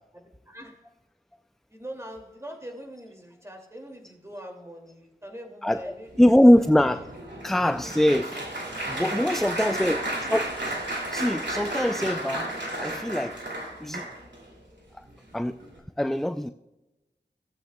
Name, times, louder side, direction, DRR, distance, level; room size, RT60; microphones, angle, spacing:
voice 1, 0.1-0.9 1.7-6.4 7.7-7.9 9.1-10.3, equal, 15° right, 1 dB, 2.3 m, -43 dB
Applause, 6.1-14.4 15.1-15.3 15.6-15.8, right 1 dB, 85° right, 2.5 m, -33 dB
voice 2, 6.2-7.1 7.4-8.4 8.9-10.0 10.3-10.5 11.1-12.5 12.8-13.4 13.8-14.1 14.9-15.0 15.3-15.6 16.0-16.5, left 1 dB, ahead, 10 dB, 0.3 m, -22 dB
16.5 x 8.5 x 2.2 m, 0.98 s
wide cardioid pair, 50°, 18 cm